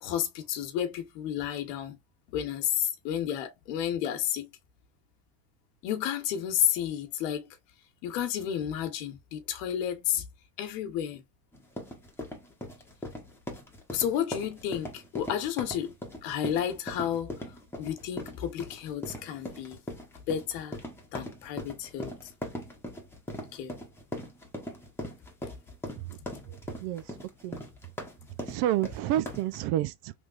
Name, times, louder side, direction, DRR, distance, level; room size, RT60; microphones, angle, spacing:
voice 1, 0.0-2.0 2.3-4.5 5.8-7.5 8.0-10.2 10.6-11.2 13.9-15.9 16.2-17.3 17.8-19.8 20.3-20.8 21.1-22.1 23.5-23.7, left 10 dB, 80° left, 1.2 m, -31 dB
sound 1, 11.5-29.6, left 1 dB, 5° left, 1.0 m, -40 dB
voice 2, 28.5-30.1, right 13 dB, 60° right, 0.6 m, -29 dB
3.5 x 3.1 x 2.4 m
supercardioid pair, 110°, 48 cm